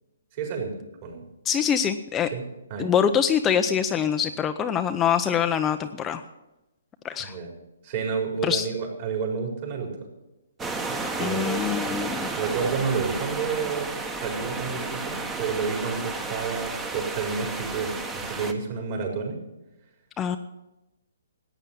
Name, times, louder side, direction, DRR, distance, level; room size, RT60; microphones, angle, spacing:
voice 1, 0.4-1.2 2.3-2.4 2.7-2.9 7.2-7.5 7.8-9.9 11.1-11.7 12.3-13.9 14.2-19.4, right 5 dB, 40° right, 1 dB, 4.6 m, -30 dB
voice 2, 1.4-2.3 2.8-6.2 7.0-7.4 8.4-8.7 11.2-12.3 20.2-20.4, left 8 dB, 15° left, 7 dB, 0.6 m, -24 dB
sound 1, 10.6-18.5, right 3 dB, 15° right, 1.2 m, -32 dB
14.5 x 9.0 x 8.7 m, 0.98 s
hypercardioid pair, 140°, 0 cm